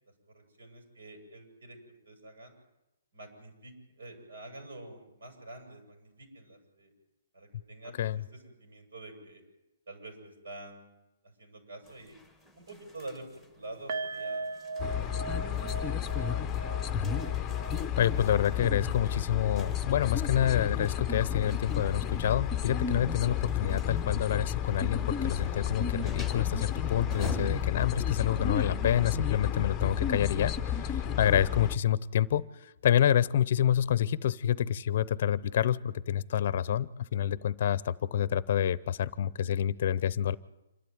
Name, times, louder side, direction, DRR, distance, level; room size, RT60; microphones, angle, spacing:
voice 1, 0.3-1.8 2.1-2.5 3.1-6.9 7.3-9.4 9.9-10.9 11.2-12.2 12.6-14.5 15.2-15.3 15.7-16.3, right 2 dB, 80° right, 4 dB, 7.8 m, -47 dB
sound 1, 11.8-28.7, left 2 dB, 5° right, 1.6 m, -48 dB
sound 2, 13.9-21.1 21.4-21.5 21.9-22.0, right 3 dB, 40° right, 0.8 m, -41 dB
sound 3, 14.8-31.8, left 9 dB, 10° left, 0.8 m, -31 dB
voice 2, 18.0-30.5 30.8-32.4 32.8-40.4, left 10 dB, 45° left, 19 dB, 0.7 m, -28 dB
27.0 x 12.0 x 9.4 m, 0.96 s
hypercardioid pair, 165°, 0 cm